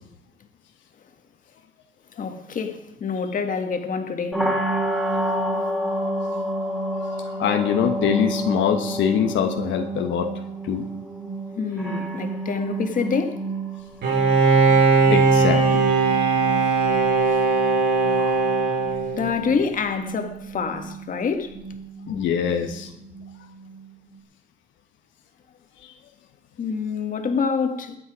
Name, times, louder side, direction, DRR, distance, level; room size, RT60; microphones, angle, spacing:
voice 1, 2.1-4.4 11.5-13.4 19.1-21.5 26.6-28.0, left 5 dB, 45° left, 1.8 m, -26 dB
sound 1, 4.3-24.1, right 1 dB, 5° right, 3.3 m, -30 dB
voice 2, 7.4-10.3 10.6-10.9 14.0-14.2 15.1-16.3 18.1-18.4 22.1-22.9, left 8 dB, 85° left, 1.2 m, -24 dB
Bowed string instrument, 14.0-19.6, right 4 dB, 70° right, 5.1 m, -19 dB
21.5 x 8.6 x 5.0 m
cardioid pair, 130°, 19 cm